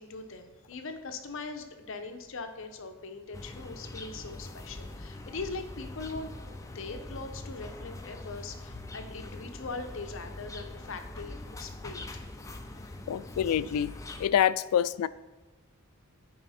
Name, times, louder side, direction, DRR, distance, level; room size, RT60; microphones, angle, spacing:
voice 1, 0.0-6.3 6.7-12.3 12.7-13.0 13.3-13.4, left 3 dB, 60° left, 7 dB, 0.7 m, -41 dB
sound 1, 3.3-14.3, left 2 dB, 15° left, 0.4 m, -43 dB
voice 2, 13.1-13.9 14.2-15.1, left 9 dB, 85° left, 16 dB, 0.3 m, -26 dB
9.4 x 4.9 x 4.1 m, 1.2 s
head